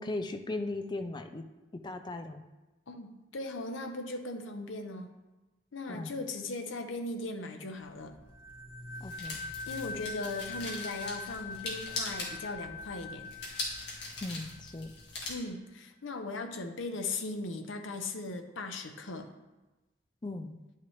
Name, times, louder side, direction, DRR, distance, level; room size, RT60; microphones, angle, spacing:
voice 1, 0.0-1.4 1.7-2.4 5.9-6.2 9.0-9.5 14.2-14.9 20.2-20.6, left 2 dB, 20° left, 7 dB, 0.4 m, -38 dB
voice 2, 2.9-5.1 5.7-8.2 9.7-13.3 15.3-19.3, left 2 dB, 90° left, 6 dB, 0.8 m, -38 dB
sound 1, 7.9-15.3, left 2 dB, 60° left, 1.8 m, -42 dB
sound 2, 8.3-14.8, left 5 dB, 25° right, 2.2 m, -43 dB
10.0 x 5.7 x 3.2 m, 1.1 s
head